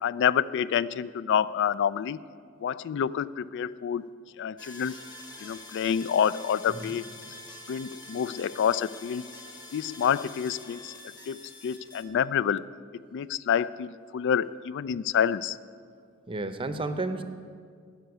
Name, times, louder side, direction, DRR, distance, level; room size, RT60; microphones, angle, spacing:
voice 1, 0.0-2.2 2.6-4.1 4.4-4.9 5.4-7.1 7.7-9.3 9.7-10.9 11.3-11.4 11.6-12.6 13.1-15.6, left 8 dB, 55° left, 18 dB, 0.3 m, -27 dB
sound 1, 4.6-12.0, left 2 dB, 20° left, 1.3 m, -46 dB
voice 2, 16.3-17.2, right 2 dB, 25° right, 9 dB, 0.6 m, -32 dB
12.5 x 5.7 x 9.3 m, 2.1 s
head